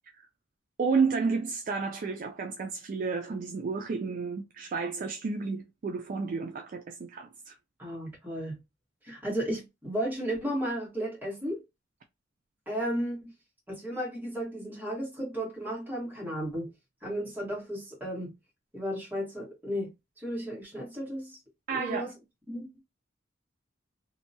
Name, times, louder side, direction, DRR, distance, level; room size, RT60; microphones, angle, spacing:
voice 1, 0.8-7.5 21.7-22.1, right 4 dB, 45° right, 0.3 m, -31 dB
voice 2, 7.8-8.6 9.0-11.6 12.7-13.3 13.7-16.7 17.0-18.3 18.7-21.4 21.7-22.1 22.5-22.7, equal, 10° right, 1.2 m, -34 dB
2.7 x 2.2 x 2.6 m
head